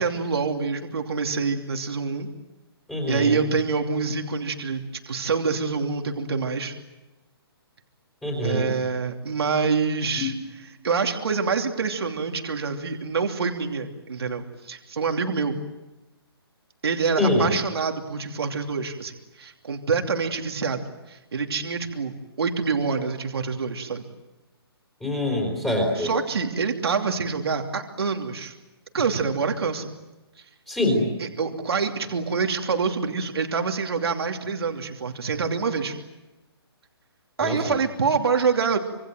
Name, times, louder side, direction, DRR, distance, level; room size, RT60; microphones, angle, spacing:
voice 1, 0.0-2.3 3.1-6.7 8.4-15.6 16.8-20.8 21.1-24.0 26.0-28.5 28.9-29.9 31.2-36.0 37.4-38.8, right 5 dB, 70° right, 4 dB, 2.9 m, -26 dB
voice 2, 2.9-3.3 8.2-8.7 10.2-10.3 17.2-17.5 25.0-26.1 30.7-31.0 37.4-37.6, left 1 dB, 5° left, -3 dB, 4.1 m, -24 dB
26.5 x 26.0 x 7.8 m, 1.0 s
hypercardioid pair, 175°, 14 cm